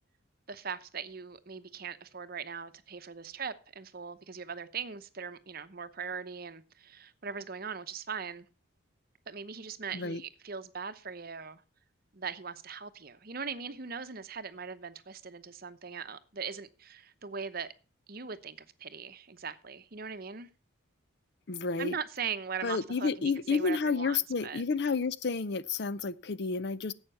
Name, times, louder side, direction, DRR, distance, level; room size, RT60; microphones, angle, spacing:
voice 1, 0.5-8.5 9.3-11.6 12.1-17.7 18.1-20.5 21.8-24.6, right 6 dB, 45° right, 0.9 m, -40 dB
voice 2, 21.5-22.0 22.6-26.9, left 4 dB, 55° left, 0.6 m, -30 dB
11.5 x 8.1 x 5.6 m
head